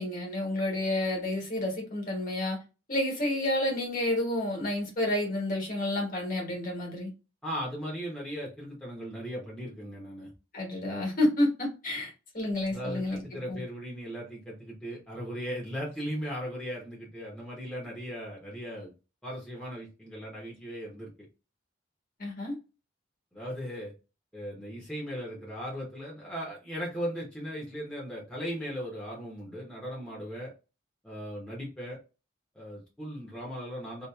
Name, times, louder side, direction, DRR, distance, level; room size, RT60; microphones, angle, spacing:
voice 1, 0.0-2.6 2.9-7.1 10.5-13.2 13.5-13.6 22.2-22.5, left 1 dB, 45° left, 1.3 m, -30 dB
voice 2, 7.4-10.3 12.7-18.9 19.2-21.1 23.3-23.9 24.3-30.5 31.0-32.0 32.5-34.1, equal, 5° left, 0.8 m, -37 dB
2.8 x 2.5 x 2.3 m
head